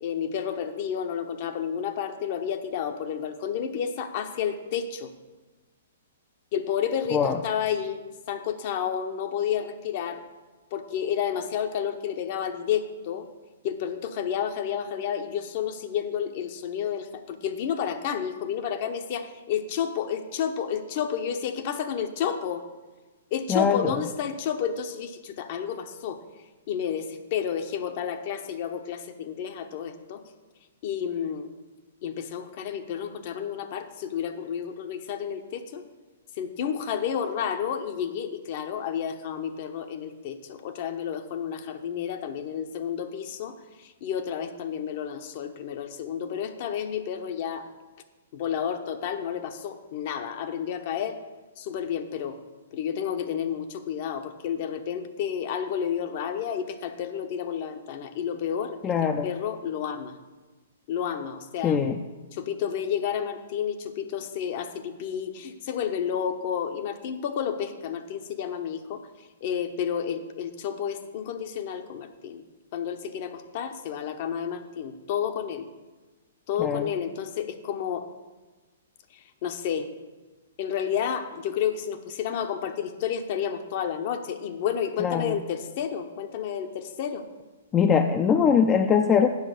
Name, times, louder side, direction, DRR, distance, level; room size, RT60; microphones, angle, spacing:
voice 1, 0.0-5.1 6.5-10.2 10.7-13.3 13.6-22.6 23.3-26.2 26.7-30.2 30.8-31.5 32.0-35.8 36.4-47.7 48.3-51.2 51.6-52.4 52.7-58.8 59.2-60.2 60.9-61.8 62.3-69.0 69.4-72.4 72.7-75.7 76.5-78.1 79.1-79.9 80.6-87.2, left 8 dB, 45° left, 8 dB, 0.8 m, -31 dB
voice 2, 23.5-23.9 58.8-59.3 61.6-62.0 76.6-76.8 85.0-85.4 87.7-89.3, left 7 dB, 20° left, 6 dB, 0.4 m, -22 dB
8.1 x 6.0 x 6.5 m, 1.2 s
figure-of-eight pair, 115°, 0 cm